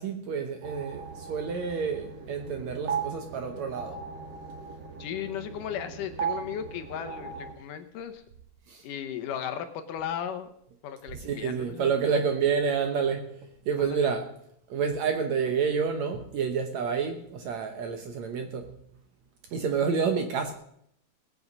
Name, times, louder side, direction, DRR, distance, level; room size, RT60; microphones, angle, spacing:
voice 1, 0.0-4.0 8.7-8.8 11.1-13.4 13.7-14.3 14.7-18.7 19.5-20.5, right 6 dB, 65° right, 1.9 m, -29 dB
sound 1, 0.6-7.5, right 6 dB, 50° right, 1.3 m, -37 dB
voice 2, 5.0-8.2 8.8-10.5 10.8-11.9 13.8-14.2, left 9 dB, 75° left, 2.3 m, -36 dB
19.0 x 8.5 x 5.3 m
omnidirectional pair, 4.1 m